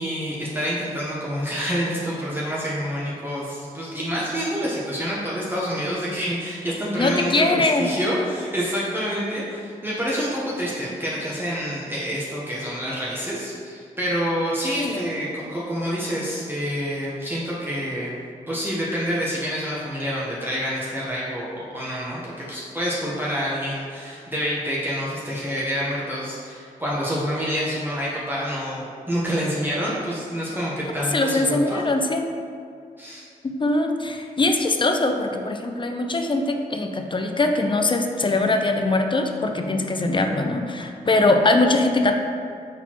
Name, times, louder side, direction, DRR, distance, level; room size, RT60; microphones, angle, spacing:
voice 1, 0.0-18.1 18.5-31.8 33.0-33.2, equal, 15° right, -7 dB, 0.9 m, -27 dB
voice 2, 7.0-7.9 14.8-15.0 31.1-32.2 33.6-42.2, left 2 dB, 30° left, 5 dB, 0.5 m, -22 dB
4.3 x 4.0 x 2.9 m, 2.2 s
supercardioid pair, 40°, 17 cm